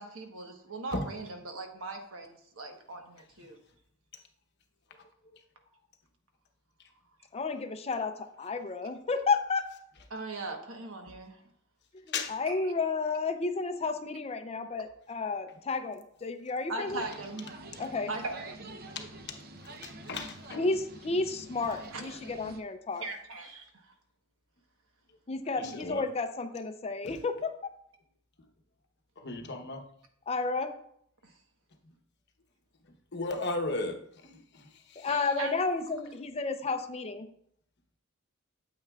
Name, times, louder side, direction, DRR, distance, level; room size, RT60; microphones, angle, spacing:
voice 1, 0.0-3.6 10.1-11.4 12.5-12.7 16.7-17.5 18.1-18.9 21.9-22.2 23.0-23.9 25.6-25.7 31.2-31.3 35.0-35.5, right 3 dB, 70° right, 4 dB, 1.2 m, -40 dB
voice 2, 7.3-9.7 12.3-17.1 17.8-18.1 20.6-23.0 25.3-27.7 30.3-30.7 35.0-37.3, left 4 dB, 30° left, 8 dB, 0.5 m, -32 dB
sound 1, 16.8-22.6, right 2 dB, 50° right, 0.6 m, -47 dB
voice 3, 19.8-20.7 25.6-26.0 27.0-27.2 29.2-29.8 33.1-35.1, left 2 dB, 55° left, 4 dB, 1.0 m, -36 dB
8.9 x 7.9 x 2.4 m, 0.69 s
head